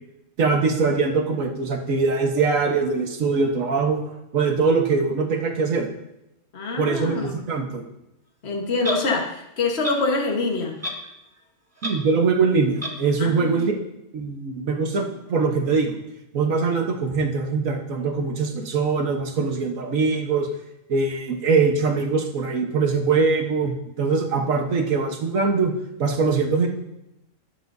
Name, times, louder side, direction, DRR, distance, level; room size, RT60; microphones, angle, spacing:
voice 1, 0.4-4.0 4.3-5.9 6.8-7.8 11.8-13.8 14.1-16.0 16.3-20.5 20.9-25.7 26.0-26.7, right 4 dB, 80° right, 3 dB, 1.6 m, -22 dB
voice 2, 6.5-7.4 8.4-10.8 13.2-13.6, left 3 dB, 55° left, 1 dB, 1.6 m, -25 dB
Clock, 8.8-9.0 9.8-10.0 10.8-11.1 11.4-11.5 11.8-12.0 12.8-13.0, equal, 10° right, 1.2 m, -29 dB
20.5 x 7.1 x 2.7 m, 0.89 s
omnidirectional pair, 1.4 m